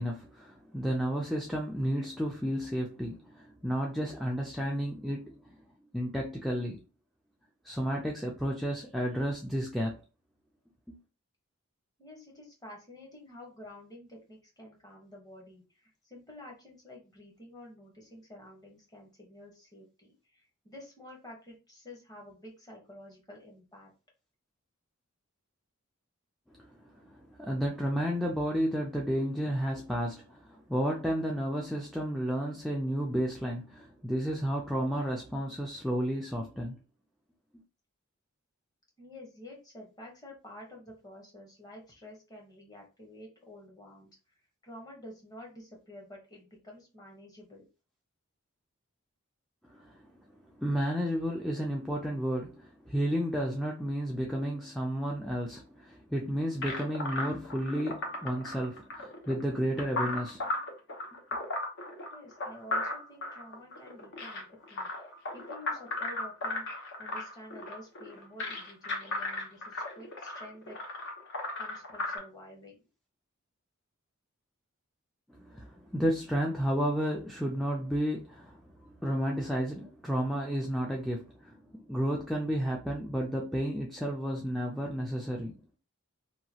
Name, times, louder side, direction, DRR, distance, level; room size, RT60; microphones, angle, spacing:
voice 1, 0.0-5.6 5.9-6.8 7.6-10.0 10.9-11.0 26.6-26.7 27.0-36.8 49.7-50.1 50.6-60.4 61.3-61.4 75.3-81.6 81.9-85.6, equal, ahead, 0.3 m, -32 dB
voice 2, 12.0-23.9 39.0-44.1 44.6-47.6 62.1-70.8 71.1-71.3 71.6-72.8, left 1 dB, 20° left, 1.0 m, -50 dB
sound 1, 56.6-72.2, left 2 dB, 60° left, 0.9 m, -36 dB
2.9 x 2.3 x 2.7 m
head